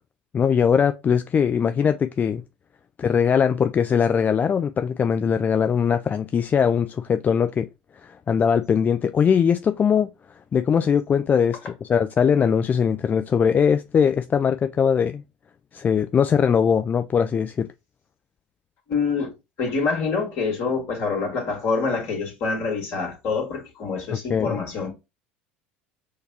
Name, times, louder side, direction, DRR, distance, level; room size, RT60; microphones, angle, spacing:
voice 1, 0.3-2.4 3.0-7.7 8.0-10.1 10.5-15.2 15.7-17.7 24.1-24.6, left 7 dB, 30° left, 0.3 m, -21 dB
voice 2, 18.9-19.3 19.6-24.9, left 4 dB, 55° left, 1.9 m, -26 dB
6.4 x 2.3 x 2.8 m
hypercardioid pair, 70°, 6 cm